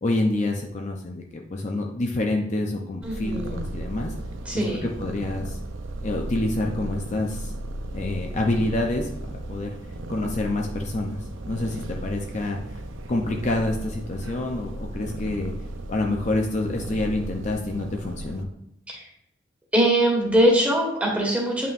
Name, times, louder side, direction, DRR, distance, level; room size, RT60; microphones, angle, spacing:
voice 1, 0.0-4.1 4.5-5.6 6.0-7.5 7.9-9.7 10.1-11.2 11.5-12.8 13.1-15.5 15.9-18.5, left 2 dB, 35° left, 1 dB, 0.6 m, -27 dB
voice 2, 3.0-3.6 4.5-4.8 18.9-19.1 19.7-21.7, right 1 dB, 5° right, -1 dB, 1.6 m, -22 dB
Purr, 3.0-18.4, right 1 dB, 80° right, 0.6 m, -35 dB
9.1 x 5.6 x 2.5 m, 0.79 s
head